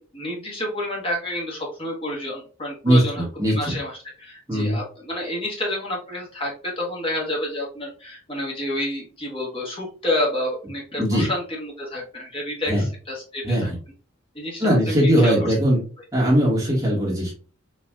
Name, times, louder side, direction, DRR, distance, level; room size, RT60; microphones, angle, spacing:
voice 1, 0.0-13.7 14.3-15.3, left 1 dB, 25° left, -3 dB, 1.3 m, -29 dB
voice 2, 2.8-3.7 4.5-4.8 11.0-11.3 12.7-12.9 13.4-13.8 14.6-15.8 16.1-17.3, equal, 15° right, -4 dB, 1.6 m, -20 dB
4.3 x 3.1 x 2.3 m, 0.38 s
head